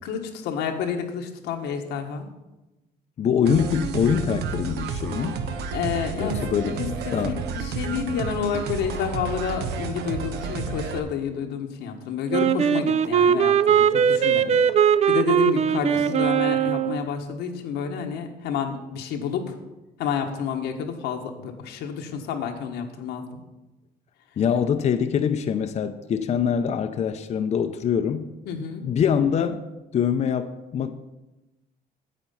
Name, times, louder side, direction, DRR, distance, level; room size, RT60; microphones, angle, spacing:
voice 1, 0.0-2.3 5.7-6.4 6.8-14.6 14.8-19.6 20.0-23.4 28.5-28.9, left 7 dB, 90° left, 4 dB, 1.3 m, -29 dB
voice 2, 3.2-5.4 6.2-6.8 7.1-7.4 16.0-16.1 24.4-28.3 28.8-29.7 29.9-30.9, left 7 dB, 40° left, 7 dB, 0.6 m, -24 dB
sound 1, 3.5-11.0, right 5 dB, 75° right, 1.0 m, -31 dB
Wind instrument woodwind instrument, 12.3-17.0, right 8 dB, 40° right, 0.5 m, -20 dB
9.1 x 8.0 x 5.6 m, 1.0 s
cardioid pair, 110°, 17 cm